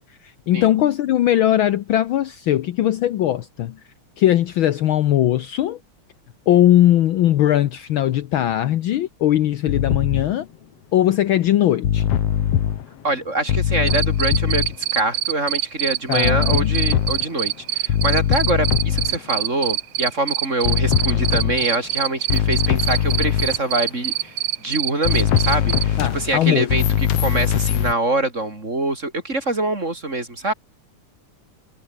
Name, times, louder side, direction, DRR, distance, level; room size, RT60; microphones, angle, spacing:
voice 1, 0.2-3.8 4.2-5.8 6.5-10.5 10.9-12.2 16.1-16.7 26.0-26.7, left 12 dB, 85° left, 1.1 m, -19 dB
sound 1, 9.7-10.4 11.8-12.9 13.5-14.8 16.2-17.5 17.9-19.3 20.6-21.8 22.3-23.6 25.1-27.9, left 10 dB, 60° left, 2.4 m, -21 dB
voice 2, 13.0-14.6 14.9-24.3 24.6-30.5, right 2 dB, 25° right, 4.5 m, -24 dB
Cricket, 13.9-25.8, right 13 dB, 70° right, 1.3 m, -24 dB
omnidirectional pair, 3.3 m